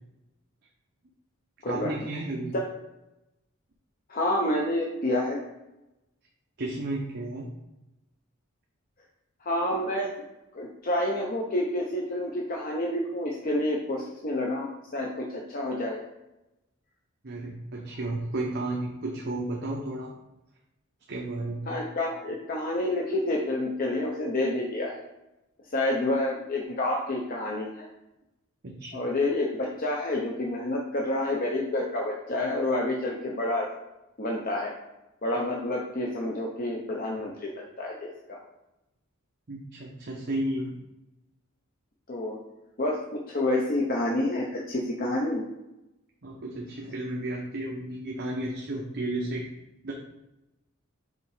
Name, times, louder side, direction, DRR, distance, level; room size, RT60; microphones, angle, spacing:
voice 1, 1.6-2.5 6.6-7.5 17.2-20.1 21.1-21.7 28.6-29.0 39.5-40.7 46.2-49.5 49.8-49.9, right 2 dB, 50° right, -1 dB, 0.8 m, -33 dB
voice 2, 4.1-5.4 9.4-10.1 10.5-16.0 21.7-25.0 25.7-27.9 28.9-33.7 34.2-34.7 35.2-38.4 42.1-42.4 42.8-45.4, left 1 dB, 45° left, -1 dB, 0.7 m, -29 dB
5.4 x 3.9 x 4.8 m, 0.94 s
head